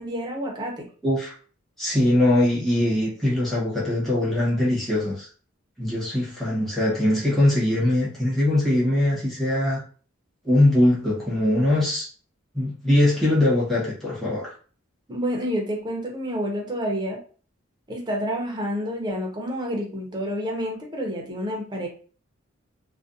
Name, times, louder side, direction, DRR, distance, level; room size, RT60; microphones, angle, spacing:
voice 1, 0.0-0.8 15.1-17.2 17.9-21.9, equal, 20° right, 0 dB, 0.6 m, -29 dB
voice 2, 1.0-1.3 1.8-5.3 5.8-9.8 10.4-12.1 12.5-14.5, left 1 dB, ahead, -7 dB, 0.9 m, -21 dB
2.5 x 2.2 x 2.5 m, 0.41 s
head